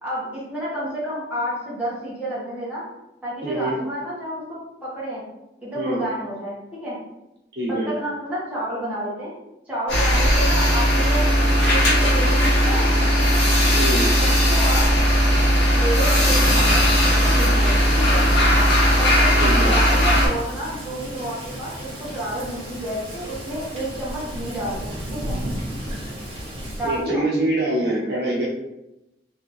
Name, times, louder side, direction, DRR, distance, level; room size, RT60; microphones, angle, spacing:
voice 1, 0.0-2.8 3.2-5.2 5.6-6.5 6.8-7.0 7.7-9.3 9.7-11.3 11.7-13.1 14.2-14.9 15.7-16.9 17.2-18.3 19.0-25.4 26.8-27.2, right 1 dB, 10° right, -9 dB, 1.1 m, -30 dB
voice 2, 3.4-3.8 5.7-6.0 7.6-7.9 13.7-14.0 19.3-19.7 26.8-28.5, right 1 dB, 60° right, -6 dB, 1.1 m, -24 dB
sound 1, 9.9-20.3, equal, 85° left, 1.2 m, -17 dB
Thunder / Rain, 16.0-27.1, equal, 30° right, 1.2 m, -33 dB
3.4 x 2.7 x 3.0 m, 0.92 s
head